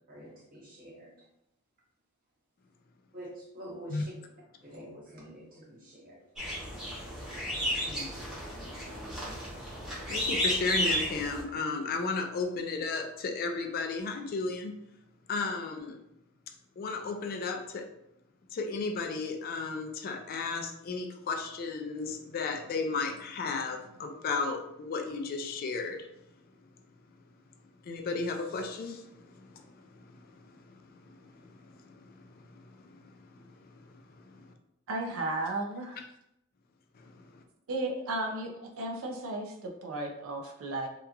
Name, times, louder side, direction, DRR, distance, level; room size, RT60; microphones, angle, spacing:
voice 1, 0.1-1.1 3.1-4.1 4.6-6.2 8.9-9.3, right 1 dB, 45° right, -4 dB, 0.9 m, -47 dB
sound 1, 6.4-11.4, equal, 5° right, 0.8 m, -33 dB
voice 2, 10.1-14.7 15.3-16.0 16.8-17.9 18.5-26.1 27.9-29.0 29.4-29.6 31.9-32.0, left 4 dB, 45° left, 5 dB, 0.3 m, -33 dB
voice 3, 34.9-36.0 37.7-40.9, right 2 dB, 75° right, 2 dB, 0.4 m, -34 dB
2.8 x 2.4 x 2.3 m, 0.81 s
head